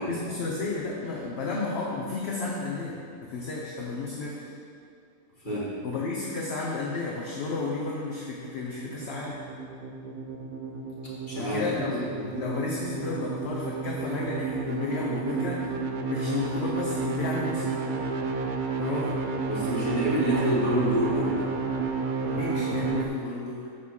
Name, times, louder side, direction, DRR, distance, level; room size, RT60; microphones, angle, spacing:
voice 1, 0.1-4.4 5.8-9.4 11.4-15.7 16.1-17.9 18.8-19.2 22.2-23.6, left 3 dB, 55° left, -3 dB, 1.0 m, -32 dB
sound 1, 8.4-23.1, right 4 dB, 55° right, 0.6 m, -31 dB
voice 2, 11.3-11.7 12.1-12.3 19.5-21.4, equal, 35° left, -9 dB, 2.3 m, -27 dB
6.5 x 5.5 x 6.2 m, 2.4 s
omnidirectional pair, 1.5 m